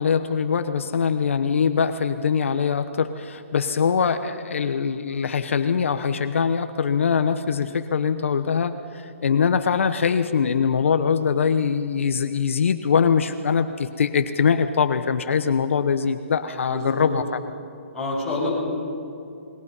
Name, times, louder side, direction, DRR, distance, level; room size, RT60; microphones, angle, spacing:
voice 1, 0.0-17.4, left 6 dB, 70° left, 9 dB, 1.0 m, -22 dB
voice 2, 16.7-17.1 17.9-18.5, left 2 dB, 5° left, -8 dB, 7.1 m, -28 dB
28.5 x 21.5 x 5.6 m, 2.7 s
hypercardioid pair, 165°, 7 cm